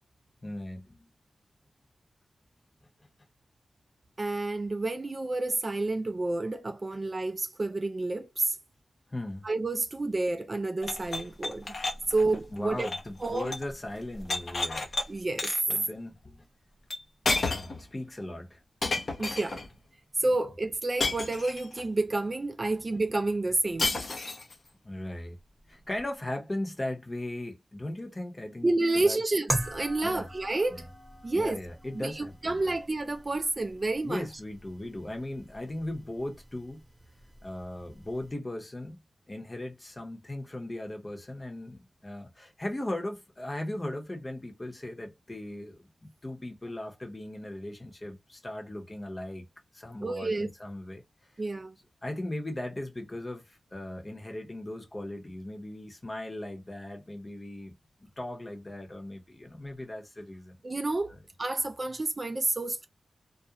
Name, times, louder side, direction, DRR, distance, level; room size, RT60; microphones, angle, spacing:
voice 1, 0.4-1.1 9.1-9.5 12.5-14.9 15.7-16.5 17.4-18.6 24.8-25.4 25.7-28.7 29.0-29.2 30.0-30.3 30.7-30.8 31.3-32.7 34.0-36.8 37.4-39.0 39.3-49.5 49.7-51.0 52.0-60.6 61.1-61.2, left 1 dB, 25° left, 0.9 m, -38 dB
voice 2, 4.2-8.6 9.4-11.7 12.1-12.9 13.2-13.5 15.1-15.5 19.2-19.6 20.2-24.0 28.6-30.9 31.2-31.6 31.9-34.3 50.0-50.5 51.4-51.7 60.6-61.1 61.4-62.9, right 2 dB, 35° right, 0.3 m, -29 dB
sound 1, 10.8-13.7 14.0-15.0 15.4-15.8 16.9-17.0 17.2-17.8 18.8-19.7 21.0-21.8 23.8-24.5, left 3 dB, 60° left, 0.7 m, -32 dB
sound 2, 29.5-38.3, right 1 dB, 10° right, 0.9 m, -41 dB
2.4 x 2.1 x 2.8 m
wide cardioid pair, 90°, 0 cm